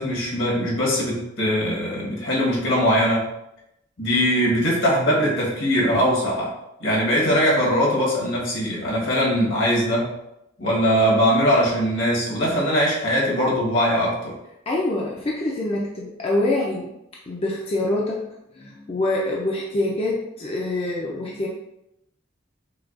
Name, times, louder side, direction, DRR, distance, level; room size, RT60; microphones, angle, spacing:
voice 1, 0.0-3.3 4.0-6.5 6.8-10.1 10.6-14.3, equal, 75° left, -4 dB, 1.4 m, -21 dB
voice 2, 14.7-16.9 17.3-18.3 18.5-21.5, left 2 dB, 30° left, -3 dB, 0.5 m, -25 dB
5.8 x 2.3 x 2.5 m, 0.86 s
head